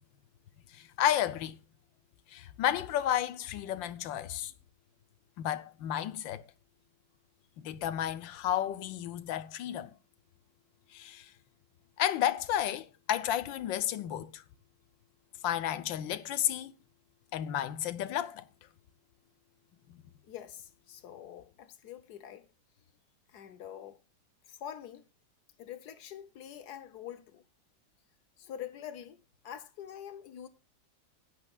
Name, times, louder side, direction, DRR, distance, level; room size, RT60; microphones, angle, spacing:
voice 1, 0.7-1.6 2.3-4.5 5.4-6.4 7.6-9.9 10.9-11.3 12.0-14.4 15.4-16.7 17.3-18.5 19.9-20.0, left 11 dB, 90° left, 1.5 m, -32 dB
voice 2, 20.3-22.5 23.3-24.0 24.5-25.0 25.6-27.4 28.4-30.5, left 10 dB, 65° left, 1.3 m, -45 dB
16.0 x 10.5 x 2.4 m
omnidirectional pair, 2.0 m